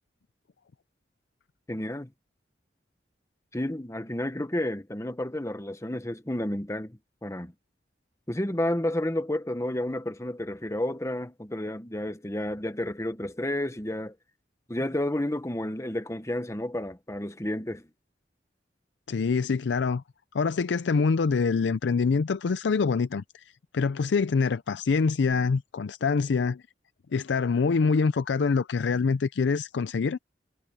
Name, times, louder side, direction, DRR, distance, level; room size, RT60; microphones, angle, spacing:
voice 1, 1.7-2.1 3.5-7.5 8.3-14.1 14.7-17.9, left 1 dB, 15° left, 1.2 m, -31 dB
voice 2, 19.1-20.0 20.3-26.6 27.1-30.2, left 5 dB, 90° left, 0.5 m, -25 dB
head